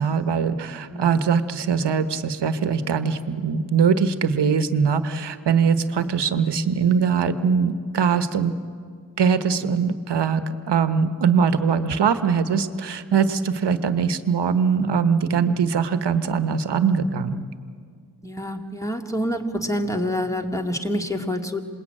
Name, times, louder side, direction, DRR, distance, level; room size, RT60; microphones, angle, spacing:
voice 1, 0.0-8.5 9.2-17.5, right 6 dB, 90° right, 10 dB, 1.2 m, -22 dB
voice 2, 0.9-1.4 5.9-6.1 13.5-14.0 18.2-21.6, equal, 10° left, 3 dB, 2.6 m, -28 dB
27.5 x 21.0 x 8.9 m, 2.1 s
cardioid pair, 60°, 40 cm